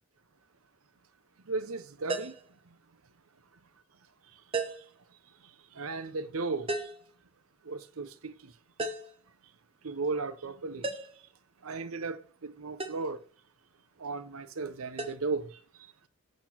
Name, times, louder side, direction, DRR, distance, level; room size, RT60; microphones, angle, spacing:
voice 1, 1.5-2.3 5.8-6.7 7.7-8.5 9.8-10.9 11.6-13.2 14.0-15.5, right 3 dB, 85° right, 0.8 m, -35 dB
sound 1, 2.1-2.5 4.5-4.9 6.7-7.1 8.8-9.2 10.8-11.2 12.8-13.1 15.0-15.2, right 3 dB, 25° right, 1.0 m, -34 dB
8.2 x 4.3 x 5.9 m
head